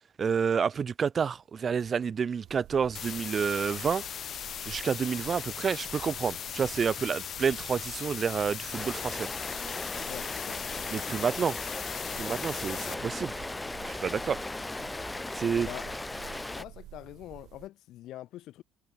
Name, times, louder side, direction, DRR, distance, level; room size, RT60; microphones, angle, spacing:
voice 1, 0.2-4.0 4.7-9.3 10.9-11.6 12.2-13.5 13.8-14.4 15.4-15.7, right 6 dB, 35° right, 0.5 m, -29 dB
sound 1, 2.4-17.7, right 14 dB, 65° right, 5.4 m, -51 dB
sound 2, 2.9-12.9, left 9 dB, 50° left, 2.5 m, -39 dB
Rain, 8.7-16.6, left 2 dB, 10° left, 0.6 m, -37 dB
voice 2, 10.1-10.6 15.7-15.9 16.6-18.6, left 14 dB, 65° left, 4.3 m, -44 dB
cardioid pair, 105°, 0 cm